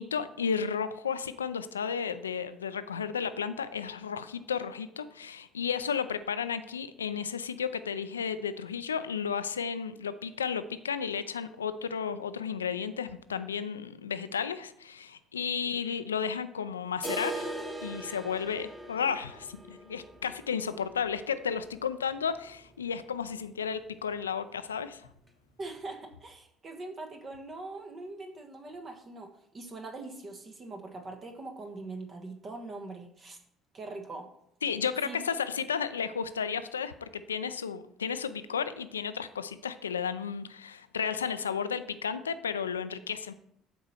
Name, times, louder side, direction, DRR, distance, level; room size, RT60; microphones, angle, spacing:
voice 1, 0.0-17.5 17.8-25.1 34.6-43.3, left 7 dB, 85° left, 13 dB, 0.4 m, -33 dB
sound 1, 17.0-22.8 23.1-23.2 23.6-23.7 24.2-24.3 25.2-25.3, right 1 dB, 15° right, 1.6 m, -41 dB
voice 2, 25.6-33.4 33.7-34.3 35.0-35.2, right 2 dB, 40° right, 3 dB, 1.3 m, -42 dB
8.2 x 4.4 x 6.5 m, 0.74 s
figure-of-eight pair, 55°, 0 cm